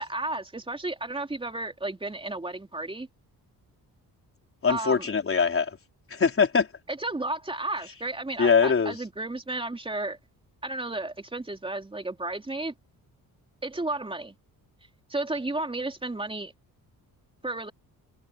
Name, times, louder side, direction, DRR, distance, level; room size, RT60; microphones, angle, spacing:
voice 1, 0.0-3.1 4.7-5.1 6.9-10.2 10.6-12.7 13.6-14.3 15.1-16.5 17.4-17.7, right 2 dB, 15° right, 3.9 m, -33 dB
voice 2, 4.6-5.8 6.1-6.7 8.4-9.0, left 5 dB, 35° left, 4.0 m, -22 dB
cardioid pair, 115°, 36 cm